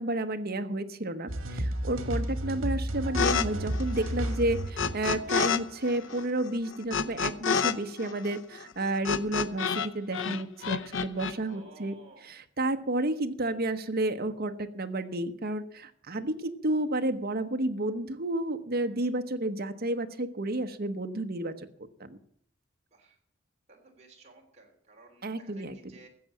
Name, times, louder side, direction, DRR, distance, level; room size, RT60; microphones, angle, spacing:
voice 1, 0.0-21.7 22.0-22.2 25.2-25.8, right 1 dB, 50° right, 7 dB, 1.0 m, -31 dB
sound 1, 1.3-6.2, right 1 dB, 75° right, 1.8 m, -32 dB
voice 2, 1.9-2.4 11.4-12.3 22.9-23.2 23.7-26.1, right 3 dB, 30° right, 0 dB, 3.3 m, -55 dB
sound 2, 3.1-3.5 3.7-5.6 5.9-9.9 10.1-11.3, left 6 dB, 65° left, 0.7 m, -29 dB
14.5 x 7.6 x 7.1 m, 0.64 s
head